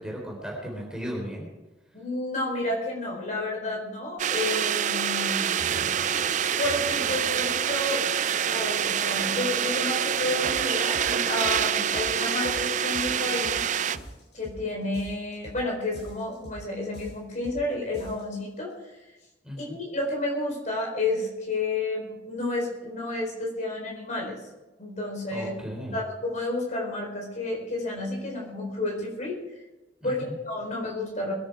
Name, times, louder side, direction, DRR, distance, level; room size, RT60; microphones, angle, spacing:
voice 1, 0.0-1.5 19.4-19.7 25.3-26.0 30.0-30.3, equal, 5° right, -2 dB, 3.7 m, -35 dB
voice 2, 1.9-5.9 6.6-8.0 8.5-13.6 14.3-18.7 19.6-24.4 24.8-25.5 25.9-29.4 30.0-31.3, left 2 dB, 40° left, -2 dB, 4.4 m, -31 dB
sound 1, 4.2-14.0, right 9 dB, 40° right, 0.4 m, -26 dB
sound 2, 5.6-14.0, equal, 85° left, 4.1 m, -43 dB
sound 3, 10.4-10.6 10.9-11.6 11.9-12.6 12.9-13.6 13.9-14.6 14.9-15.6 15.9-16.6 16.9-17.6 17.9-18.4, equal, 65° left, 6.6 m, -43 dB
22.0 x 9.8 x 4.9 m, 1.1 s
head